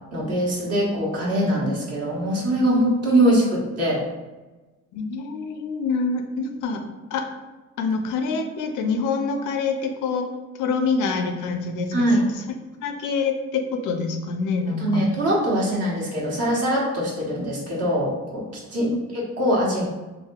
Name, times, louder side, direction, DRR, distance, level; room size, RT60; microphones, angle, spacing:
voice 1, 0.1-4.0 11.9-12.3 14.8-18.4 18.7-19.9, right 1 dB, 55° right, -4 dB, 1.1 m, -22 dB
voice 2, 4.9-6.8 7.1-7.3 7.8-12.1 12.8-15.0, left 4 dB, 85° left, 5 dB, 0.5 m, -26 dB
3.3 x 2.6 x 2.3 m, 1.2 s
cardioid pair, 90°, 30 cm